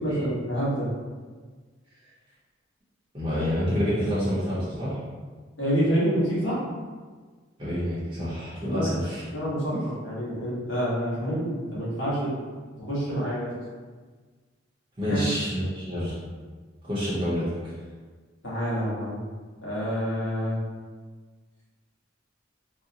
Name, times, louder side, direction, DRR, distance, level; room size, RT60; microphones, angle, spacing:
voice 1, 0.0-0.9 5.6-6.6 8.6-8.9 9.3-9.7 10.0-12.3 12.8-13.5 15.0-15.2 18.4-19.2 19.6-20.6, equal, 70° left, -8 dB, 1.3 m, -27 dB
voice 2, 3.1-5.0 7.6-9.2 15.0-16.1 16.8-17.7, equal, 30° right, -11 dB, 0.7 m, -28 dB
3.8 x 2.1 x 2.8 m, 1.4 s
head